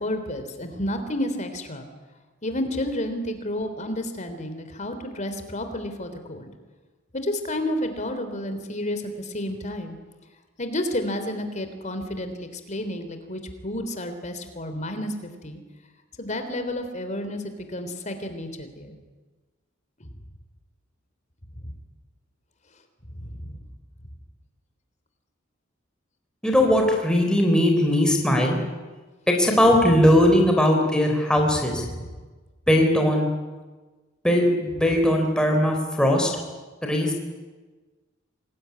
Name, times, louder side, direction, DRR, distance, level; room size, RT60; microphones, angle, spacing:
voice 1, 0.0-1.9 2.4-6.5 7.1-10.0 10.6-15.6 16.2-19.0 23.3-23.6 31.9-32.1, left 1 dB, 35° left, 8 dB, 3.5 m, -31 dB
voice 2, 26.4-28.6 29.4-31.8 32.7-33.3 34.2-36.3 36.8-37.1, left 1 dB, 5° left, 1 dB, 4.0 m, -19 dB
27.0 x 20.0 x 9.8 m, 1.3 s
head